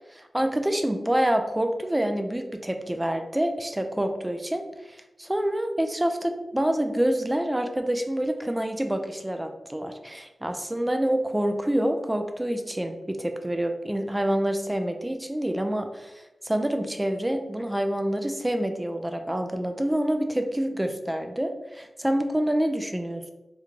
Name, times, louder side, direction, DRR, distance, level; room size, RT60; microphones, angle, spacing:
voice 1, 0.1-4.6 4.9-23.3, right 1 dB, 15° right, 5 dB, 0.4 m, -27 dB
3.0 x 2.2 x 3.7 m, 1.0 s
wide cardioid pair, 70°, 0 cm